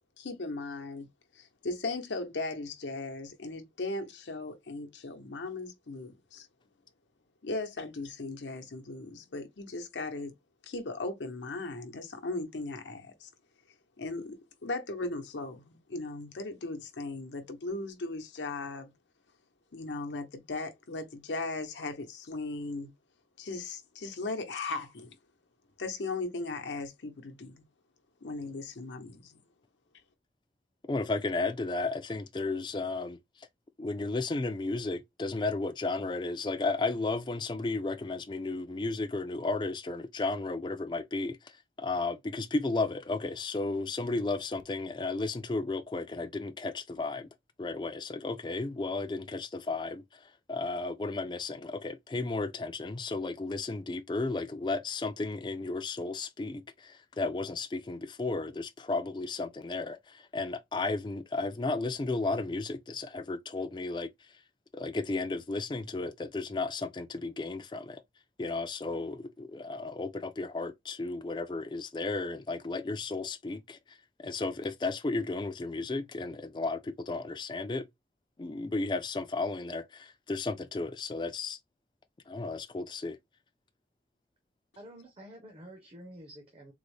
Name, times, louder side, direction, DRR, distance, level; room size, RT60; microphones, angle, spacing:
voice 1, 0.2-1.1 1.3-6.5 7.4-10.3 10.6-13.3 14.0-18.9 19.7-22.9 23.4-25.1 25.8-27.6 28.2-29.4, left 3 dB, 90° left, 0.8 m, -37 dB
voice 2, 30.9-33.5 33.8-47.3 47.6-64.1 64.7-68.0 68.4-77.9 78.4-81.6 82.3-83.2, left 3 dB, 25° left, 0.3 m, -34 dB
voice 3, 84.8-86.7, equal, 30° right, 0.6 m, -49 dB
3.9 x 2.0 x 3.1 m
head